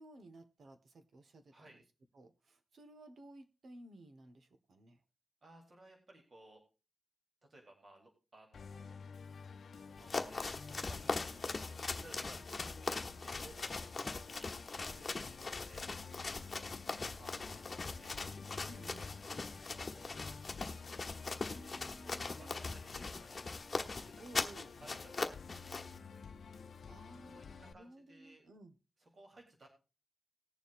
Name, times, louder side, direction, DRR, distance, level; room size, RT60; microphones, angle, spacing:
voice 1, 0.0-1.8 2.1-5.0 15.1-15.3 18.6-19.1 21.3-22.5 24.2-24.7 26.9-28.8, right 1 dB, 70° right, 8 dB, 1.5 m, -56 dB
voice 2, 5.4-6.6 7.5-9.0 9.7-10.6 10.9-12.9 13.2-15.2 15.6-15.9 17.2-18.3 18.6-20.1 22.0-23.4 24.0-25.3 25.7-26.2 27.2-27.5 27.7-28.5 29.1-29.7, right 1 dB, 40° right, 1 dB, 3.6 m, -60 dB
Musical instrument, 8.5-27.7, left 5 dB, 70° left, 0.7 m, -52 dB
sound 1, 10.0-26.0, left 3 dB, 35° left, 1.2 m, -41 dB
20.0 x 7.2 x 2.6 m, 0.31 s
wide cardioid pair, 170°, 0 cm